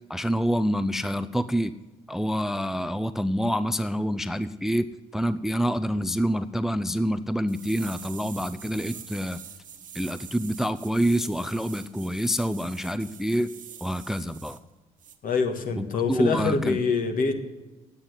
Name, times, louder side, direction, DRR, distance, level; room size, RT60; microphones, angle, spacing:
voice 1, 0.1-1.7 2.1-4.9 5.1-9.4 9.9-13.5 13.8-14.6 15.8-16.8, equal, ahead, 13 dB, 0.5 m, -27 dB
sound 1, 7.5-14.6 15.0-15.2, right 8 dB, 50° right, 1.2 m, -44 dB
voice 2, 15.2-17.3, left 4 dB, 55° left, 6 dB, 1.7 m, -25 dB
9.7 x 8.8 x 9.5 m, 1.2 s
hypercardioid pair, 55°, 18 cm